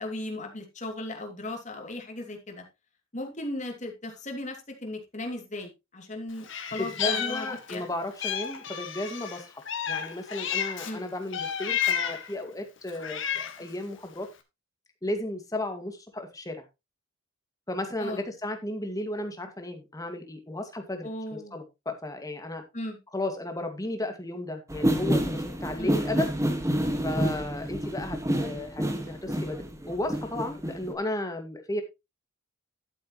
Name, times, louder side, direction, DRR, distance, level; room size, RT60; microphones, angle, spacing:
voice 1, 0.0-2.6 3.1-7.9 10.8-11.1 18.0-18.2 21.0-21.6 22.7-23.0 25.8-26.0, left 1 dB, 35° left, 2.7 m, -37 dB
Meow, 6.4-7.8 8.2-10.9 11.3-12.3 12.9-13.7, left 8 dB, 60° left, 1.7 m, -31 dB
voice 2, 6.8-9.6 9.9-14.3 15.0-16.6 17.7-22.6 23.1-26.3 27.0-31.8, left 1 dB, 15° left, 2.1 m, -34 dB
sound 1, 24.7-30.9, equal, 15° right, 1.8 m, -28 dB
12.0 x 8.3 x 3.1 m
head